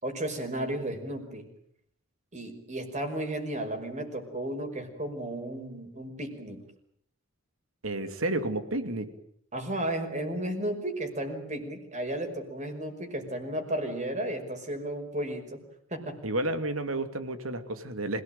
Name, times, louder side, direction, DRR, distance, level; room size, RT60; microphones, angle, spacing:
voice 1, 0.0-1.5 2.3-6.6 9.5-15.6 15.9-16.2, right 1 dB, 35° right, 6 dB, 5.6 m, -34 dB
voice 2, 7.8-9.1 16.2-18.2, right 2 dB, 85° right, 9 dB, 2.8 m, -31 dB
27.0 x 18.5 x 9.3 m, 0.70 s
head